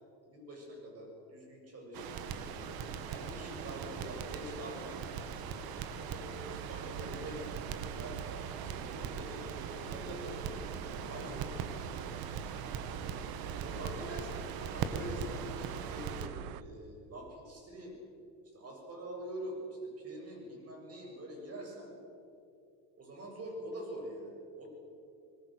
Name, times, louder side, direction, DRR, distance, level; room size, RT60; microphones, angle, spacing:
voice 1, 0.2-2.2 3.0-5.1 6.1-7.7 8.0-10.5 11.1-11.3 13.5-18.0 18.5-21.9 23.0-24.7, right 1 dB, 35° right, 1 dB, 7.6 m, -45 dB
Crackle, 1.9-16.3, right 6 dB, 55° right, 1.8 m, -40 dB
sound 1, 6.4-16.6, right 13 dB, 90° right, 0.8 m, -46 dB
voice 2, 8.6-8.9 10.7-12.0, left 4 dB, 30° left, 2 dB, 2.7 m, -53 dB
25.5 x 19.5 x 6.5 m, 2.5 s
supercardioid pair, 115°, 43 cm